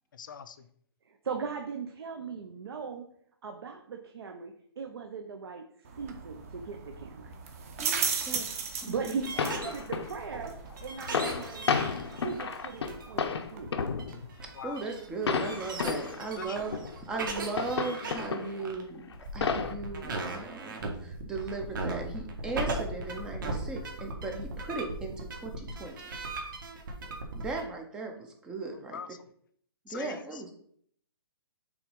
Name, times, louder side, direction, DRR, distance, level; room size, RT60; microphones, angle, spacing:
voice 1, 0.1-0.7 14.5-14.9 16.3-16.6 28.7-29.1 29.9-30.5, left 7 dB, 50° left, 11 dB, 0.6 m, -43 dB
voice 2, 1.1-3.1 3.4-5.7 6.0-7.3 8.9-10.5 10.8-11.9 12.2-13.8, right 5 dB, 65° right, 4 dB, 0.9 m, -38 dB
sound 1, 5.8-16.5, right 5 dB, 35° right, 1.0 m, -39 dB
voice 3, 7.8-8.5 8.8-9.3 14.4-16.7 17.1-26.0 27.3-29.0 29.8-30.5, right 3 dB, 5° right, 3 dB, 0.5 m, -37 dB
sound 2, 8.9-27.6, right 2 dB, 50° right, 1.6 m, -38 dB
sound 3, 9.0-9.1 9.4-10.2 10.7-10.8 11.0-14.5 15.3-16.2 16.7-18.7 19.1-19.7, left 6 dB, 85° left, 0.8 m, -32 dB
6.0 x 3.9 x 5.3 m, 0.65 s
hypercardioid pair, 170°, 14 cm